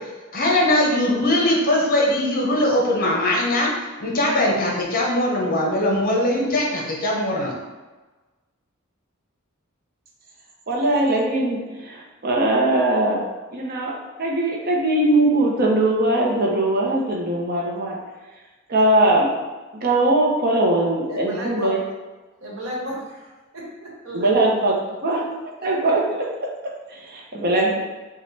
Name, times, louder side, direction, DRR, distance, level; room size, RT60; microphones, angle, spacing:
voice 1, 0.3-3.7 4.0-7.5, left 1 dB, 45° left, -2 dB, 1.0 m, -20 dB
voice 2, 10.7-18.0 18.7-19.3 19.7-21.8 24.1-25.3 25.6-27.8, right 1 dB, 50° right, -1 dB, 0.8 m, -21 dB
voice 3, 21.1-21.7 22.4-24.3, equal, 70° right, -3 dB, 1.3 m, -33 dB
6.9 x 2.3 x 3.3 m, 1.2 s
head